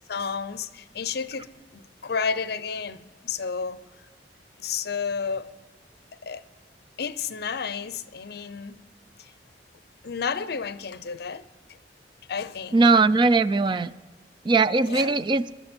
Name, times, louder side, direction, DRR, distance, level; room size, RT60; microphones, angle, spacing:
voice 1, 0.1-1.5 1.7-3.8 4.6-5.5 6.2-6.4 7.0-8.8 9.2-9.3 10.0-11.4 12.3-12.8 14.8-15.2, left 6 dB, 60° left, 15 dB, 0.6 m, -31 dB
voice 2, 12.7-13.9 14.4-15.4, right 3 dB, 25° right, 14 dB, 0.4 m, -20 dB
22.0 x 13.0 x 4.4 m, 1.3 s
head